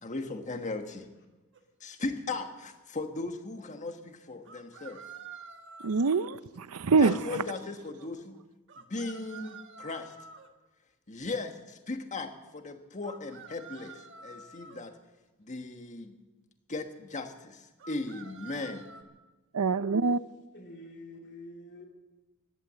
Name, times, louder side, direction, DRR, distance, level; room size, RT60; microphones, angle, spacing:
voice 1, 0.0-1.1 1.8-5.0 7.0-8.4 8.8-10.1 11.1-15.0 15.4-16.2 16.7-18.9, left 3 dB, 35° left, 1.4 m, -37 dB
sound 1, 1.5-1.6 4.4-6.3 8.7-10.5 13.0-14.9 17.8-19.0, right 5 dB, 55° right, 1.3 m, -48 dB
voice 2, 5.8-7.4 19.5-20.2, right 4 dB, 80° right, 0.6 m, -25 dB
voice 3, 20.5-21.9, left 1 dB, 50° left, 3.0 m, -47 dB
16.5 x 12.0 x 7.6 m
head